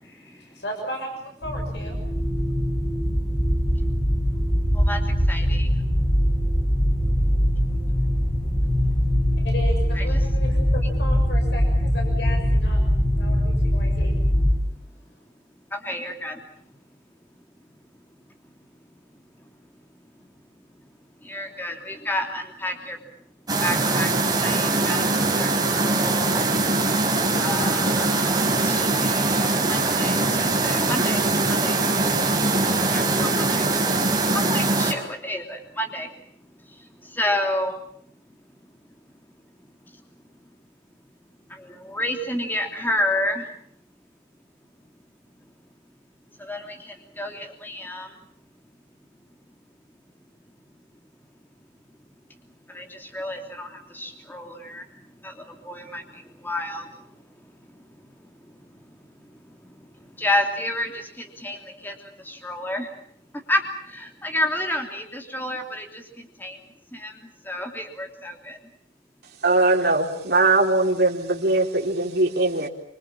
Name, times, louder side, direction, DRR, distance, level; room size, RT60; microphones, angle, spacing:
voice 1, 0.0-2.0 9.4-12.8 13.2-14.2, equal, 70° left, 3 dB, 6.7 m, -35 dB
sound 1, 1.4-14.6, equal, 30° left, 5.3 m, -22 dB
voice 2, 5.3-5.7 9.9-10.2 15.7-16.4 21.2-23.0 23.6-24.1 24.4-25.0 25.4-25.5 25.9-26.4 27.3-31.2 31.6-31.8 32.9-33.6 34.5-36.1 37.2-37.8 41.6-43.4 46.4-46.8 47.2-48.1 52.7-53.7 53.9-54.8 55.2-55.3 55.7-56.0 56.4-56.8 60.2-61.6 61.8-61.9 62.3-62.9 63.5-63.6 63.9-66.0 66.4-66.6 66.9-67.1 67.5-68.6, left 1 dB, 10° left, 3 dB, 3.1 m, -29 dB
sound 2, 23.5-34.9, right 3 dB, 20° right, 4.9 m, -22 dB
voice 3, 69.4-72.7, right 2 dB, 55° right, 1 dB, 4.1 m, -20 dB
26.5 x 26.0 x 7.4 m, 0.65 s
head